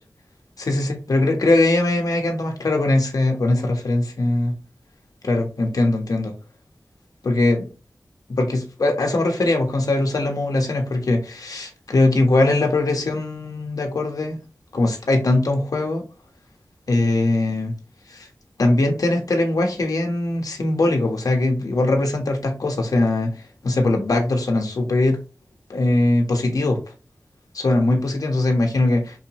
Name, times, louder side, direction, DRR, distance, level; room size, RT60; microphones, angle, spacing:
voice 1, 0.6-4.6 5.2-6.3 7.2-7.7 8.3-14.4 14.7-16.0 16.9-17.7 18.1-18.3 18.6-25.2 25.7-26.8 27.5-29.2, left 2 dB, 80° left, 1.1 m, -21 dB
4.6 x 2.9 x 2.9 m
wide cardioid pair, 70°, 6 cm